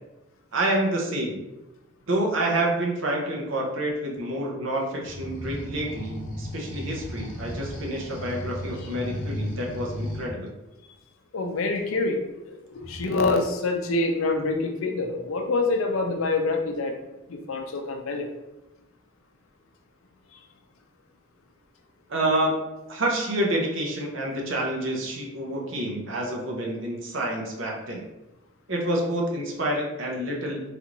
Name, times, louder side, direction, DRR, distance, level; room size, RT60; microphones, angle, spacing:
voice 1, 0.5-1.4 2.1-10.5 22.1-22.5 22.9-28.0 28.7-30.6, right 1 dB, 70° right, -1 dB, 0.7 m, -28 dB
sound 1, 5.0-10.3 12.7-13.3, equal, 40° left, 0.6 m, -35 dB
voice 2, 11.3-12.2 12.5-12.6 12.9-16.9 17.3-18.3, left 3 dB, 80° left, 4 dB, 0.5 m, -26 dB
3.3 x 2.5 x 2.9 m, 0.99 s
head